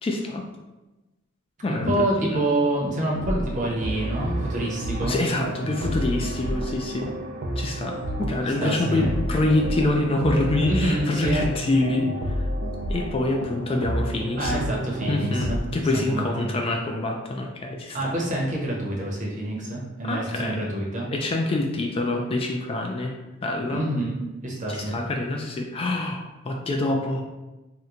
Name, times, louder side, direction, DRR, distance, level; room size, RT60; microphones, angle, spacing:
voice 1, 0.0-0.4 1.6-2.5 5.0-7.1 7.6-12.4 12.9-14.6 15.1-18.1 20.0-20.6 21.1-23.1 23.4-23.9 24.7-27.2, left 2 dB, 25° left, 2 dB, 0.3 m, -26 dB
voice 2, 1.7-5.2 8.4-9.2 10.7-11.4 14.4-15.7 15.9-16.7 17.9-21.1 23.7-25.0, right 1 dB, 40° right, -3 dB, 0.7 m, -27 dB
sound 1, 3.1-15.6, right 1 dB, 85° right, 0.5 m, -30 dB
2.9 x 2.1 x 3.7 m, 1.1 s
head